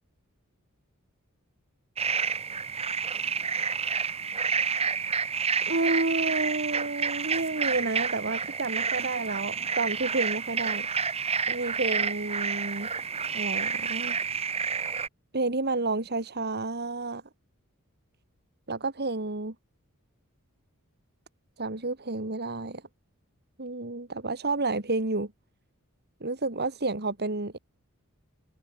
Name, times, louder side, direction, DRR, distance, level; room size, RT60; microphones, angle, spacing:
sound 1, 2.0-15.1, right 6 dB, 30° right, 1.7 m, -29 dB
voice 1, 5.7-10.9 11.5-12.9 13.3-14.2 15.3-17.2 18.7-19.5 21.6-22.8 23.6-25.3 26.2-27.6, right 3 dB, 50° right, 2.6 m, -30 dB
head